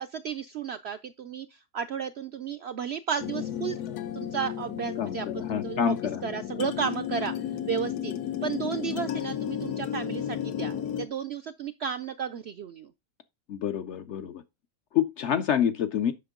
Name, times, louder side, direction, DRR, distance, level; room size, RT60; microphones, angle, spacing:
voice 1, 0.0-3.8 4.1-5.9 6.2-7.3 7.7-8.1 8.4-12.9, right 7 dB, 70° right, 0.6 m, -33 dB
sound 1, 3.2-11.1, left 10 dB, 85° left, 1.3 m, -33 dB
voice 2, 5.0-6.2 13.5-14.4 14.9-16.1, left 8 dB, 60° left, 0.8 m, -27 dB
8.0 x 6.0 x 3.6 m
omnidirectional pair, 1.6 m